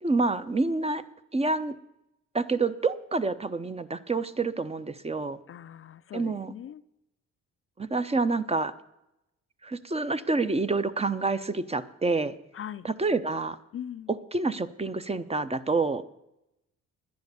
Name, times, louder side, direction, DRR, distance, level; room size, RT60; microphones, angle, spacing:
voice 1, 0.0-1.0 1.3-1.7 2.3-5.4 6.1-6.5 7.8-8.7 9.6-12.3 12.8-13.6 14.1-16.0, right 3 dB, 20° right, 12 dB, 0.8 m, -28 dB
voice 2, 5.5-6.8 12.5-12.9 13.7-14.1, left 9 dB, 45° left, 13 dB, 0.5 m, -40 dB
10.5 x 10.5 x 6.9 m, 0.87 s
cardioid pair, 90°, 30 cm